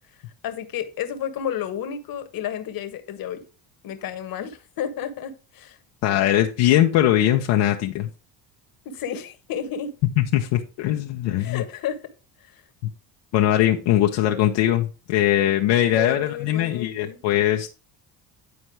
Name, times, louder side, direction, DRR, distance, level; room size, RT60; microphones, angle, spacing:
voice 1, 0.4-3.4 3.8-5.8 8.8-9.9 11.4-12.0 12.5-12.6 15.9-17.2, left 9 dB, 55° left, 1.4 m, -31 dB
voice 2, 6.0-8.1 10.2-11.6 13.3-17.7, left 12 dB, 75° left, 0.9 m, -21 dB
9.7 x 4.3 x 4.6 m
cardioid pair, 100°, 42 cm